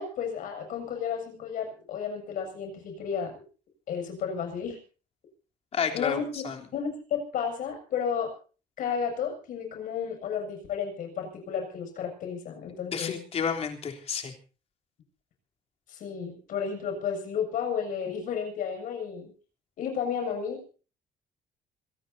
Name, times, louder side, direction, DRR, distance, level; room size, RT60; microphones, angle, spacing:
voice 1, 0.0-3.4 3.9-4.8 5.9-6.4 6.7-8.3 8.8-13.2 15.9-19.3 19.8-20.7, left 7 dB, 70° left, 5 dB, 7.3 m, -32 dB
voice 2, 5.7-6.6 12.9-14.3, left 6 dB, 45° left, 4 dB, 3.5 m, -31 dB
26.0 x 18.0 x 2.8 m, 0.37 s
cardioid pair, 140°, 14 cm